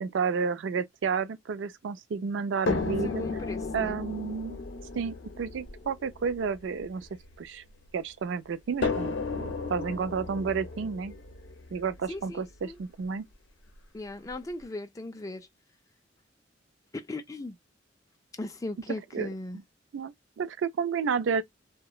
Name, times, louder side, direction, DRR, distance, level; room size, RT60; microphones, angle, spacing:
voice 1, 0.0-3.2 3.7-4.6 4.9-7.1 7.4-7.6 7.9-11.1 11.7-13.3 19.1-19.3 19.9-21.4, right 6 dB, 75° right, 0.4 m, -31 dB
sound 1, 2.7-7.9 8.8-12.8 13.7-13.8 14.3-14.4, left 4 dB, 75° left, 0.6 m, -34 dB
voice 2, 3.0-4.0 12.1-12.8 13.9-15.5 16.9-17.6 18.3-19.6, left 2 dB, 20° left, 0.3 m, -38 dB
2.8 x 2.1 x 2.3 m
head